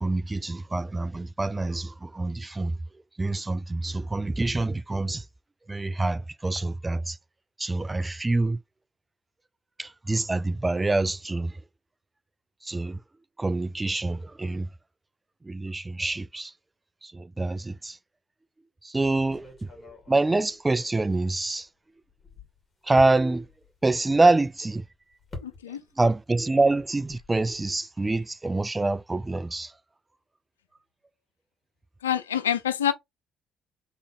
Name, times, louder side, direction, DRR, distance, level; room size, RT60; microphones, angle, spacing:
voice 1, 0.0-2.7 3.2-5.2 5.7-7.2 7.6-8.6 9.8-11.5 12.6-13.0 13.4-14.7 15.4-16.5 17.0-18.0 18.8-19.5 19.8-21.7 22.9-23.5 23.8-24.8 26.0-29.7, right 2 dB, 20° right, 0.3 m, -26 dB
sound 1, 19.0-21.7 22.0-26.1 26.4-27.7, left 2 dB, 30° left, 2.3 m, -47 dB
voice 2, 25.4-25.8 32.0-32.9, left 9 dB, 90° left, 0.5 m, -26 dB
3.8 x 3.4 x 3.6 m
hypercardioid pair, 50°, 0 cm